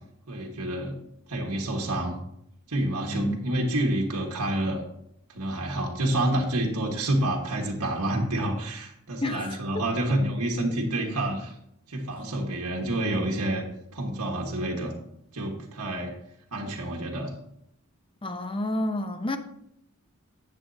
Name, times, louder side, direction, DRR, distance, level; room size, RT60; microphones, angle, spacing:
voice 1, 0.3-1.0 1.3-2.2 2.7-4.8 5.3-11.5 11.9-13.6 13.9-14.9 15.3-16.1 16.5-17.3, right 1 dB, 85° right, 1.5 m, -28 dB
voice 2, 3.1-3.4 9.2-9.6 12.1-12.3 18.2-19.4, left 1 dB, 25° left, 0.7 m, -30 dB
11.0 x 7.6 x 2.7 m
head